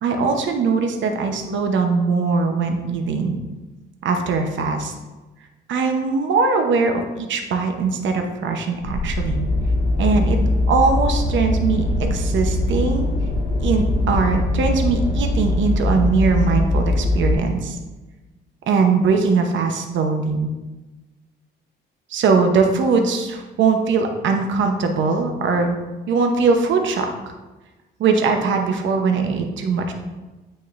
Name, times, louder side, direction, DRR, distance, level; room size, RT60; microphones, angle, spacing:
voice 1, 0.0-3.4 4.0-4.9 5.7-9.4 10.0-10.4 10.7-13.1 13.6-17.8 18.7-20.5 22.1-25.8 26.1-27.1 28.0-29.9, right 4 dB, 70° right, 4 dB, 0.9 m, -20 dB
sound 1, 8.8-17.3, left 1 dB, 55° left, 1.6 m, -21 dB
8.6 x 6.3 x 2.6 m, 1.2 s
cardioid pair, 90°, 20 cm